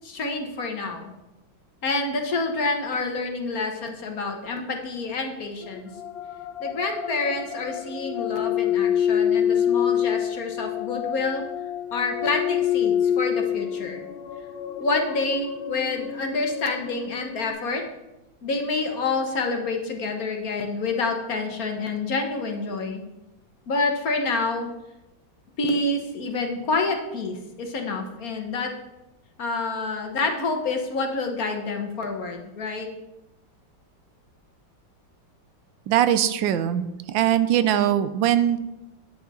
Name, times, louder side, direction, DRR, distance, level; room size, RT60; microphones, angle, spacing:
voice 1, 0.0-1.1 1.8-5.9 6.6-11.4 11.9-14.0 14.8-17.8 18.4-23.0 23.7-24.7 25.6-28.7 29.4-32.9, left 3 dB, 55° left, 3 dB, 1.5 m, -28 dB
sound 1, 5.6-17.5, left 9 dB, 80° left, 1.6 m, -27 dB
voice 2, 35.9-38.6, right 10 dB, 85° right, 12 dB, 1.4 m, -21 dB
9.7 x 8.6 x 4.2 m, 0.98 s
omnidirectional pair, 2.0 m